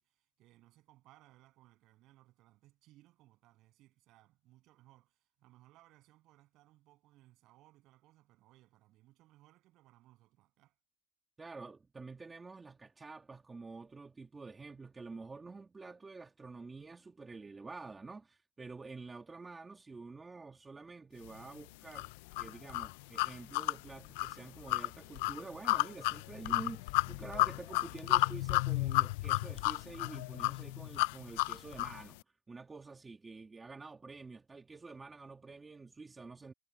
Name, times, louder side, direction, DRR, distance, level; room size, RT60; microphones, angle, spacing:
voice 1, 0.0-10.8, right 17 dB, 40° right, 8.0 m, -64 dB
voice 2, 11.4-32.2 32.5-36.5, right 4 dB, 10° right, 1.9 m, -48 dB
sound 1, 21.9-32.0, left 23 dB, 65° left, 0.4 m, -32 dB
supercardioid pair, 150°, 0 cm